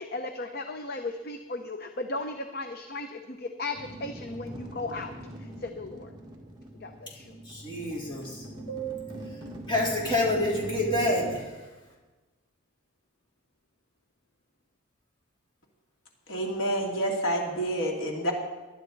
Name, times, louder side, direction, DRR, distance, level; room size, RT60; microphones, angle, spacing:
voice 1, 0.0-5.1 5.4-6.1 6.8-7.3, left 2 dB, 50° left, 6 dB, 0.7 m, -36 dB
sound 1, 3.7-11.4, equal, 20° right, 1.9 m, -42 dB
voice 2, 7.5-11.5, left 1 dB, 25° left, -3 dB, 3.6 m, -29 dB
voice 3, 16.3-18.3, right 1 dB, 80° left, 0 dB, 2.5 m, -28 dB
19.5 x 12.0 x 4.0 m, 1.2 s
head